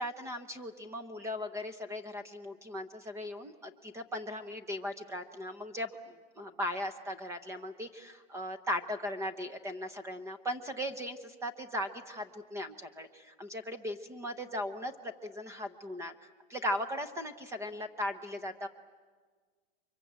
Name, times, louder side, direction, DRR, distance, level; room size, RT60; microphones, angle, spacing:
voice 1, 0.0-18.7, left 1 dB, 10° right, 11 dB, 0.7 m, -38 dB
29.5 x 24.0 x 8.1 m, 1.5 s
supercardioid pair, 165°, 29 cm